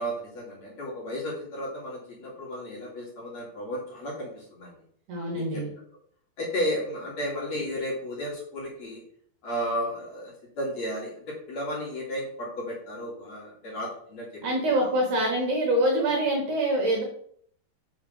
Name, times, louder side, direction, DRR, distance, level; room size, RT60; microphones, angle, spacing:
voice 1, 0.0-4.8 5.3-5.6 6.4-9.0 9.4-14.4 14.8-14.9, equal, 45° left, -4 dB, 2.8 m, -33 dB
voice 2, 5.1-5.7 14.4-17.0, right 1 dB, 60° right, 0 dB, 2.4 m, -25 dB
5.8 x 5.4 x 6.2 m, 0.63 s
omnidirectional pair, 4.9 m